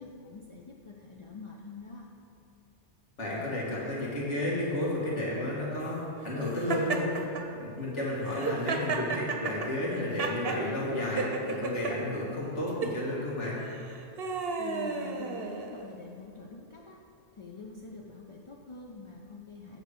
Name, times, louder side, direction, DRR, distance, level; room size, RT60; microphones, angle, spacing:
voice 1, 0.0-2.1 14.6-17.0 17.3-19.8, left 4 dB, 45° left, -1 dB, 0.4 m, -45 dB
voice 2, 3.2-7.3 7.5-13.6, left 1 dB, 80° left, -6 dB, 2.2 m, -32 dB
Laughter, 6.7-7.4 8.2-10.6 11.2-11.9 12.7-13.0 13.7-15.9, right 4 dB, 60° right, 0.9 m, -33 dB
8.1 x 4.7 x 6.6 m, 2.7 s
omnidirectional pair, 1.2 m